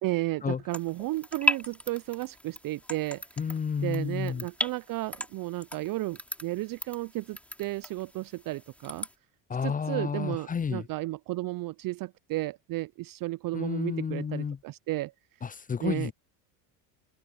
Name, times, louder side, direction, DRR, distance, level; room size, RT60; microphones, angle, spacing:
voice 1, 0.0-3.2 3.8-9.1 9.6-15.1 15.8-16.1, right 19 dB, 45° right, 0.5 m, -33 dB
sound 1, 0.7-9.1, left 1 dB, 5° left, 3.2 m, -36 dB
voice 2, 3.4-4.4 9.5-10.9 13.5-14.6 15.4-16.1, left 6 dB, 20° left, 0.5 m, -31 dB
open air
hypercardioid pair, 75°, 48 cm